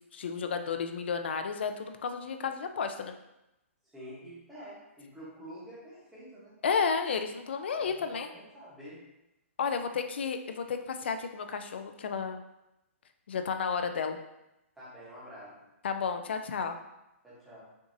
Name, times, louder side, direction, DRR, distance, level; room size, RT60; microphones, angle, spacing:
voice 1, 0.1-3.1 6.6-8.3 9.6-12.4 13.3-14.2 15.8-16.8, left 5 dB, 50° left, 7 dB, 0.4 m, -32 dB
voice 2, 3.8-6.6 7.8-9.1 14.8-15.6 17.2-17.6, equal, 5° right, -9 dB, 0.9 m, -48 dB
6.0 x 2.6 x 2.6 m, 0.91 s
hypercardioid pair, 180°, 7 cm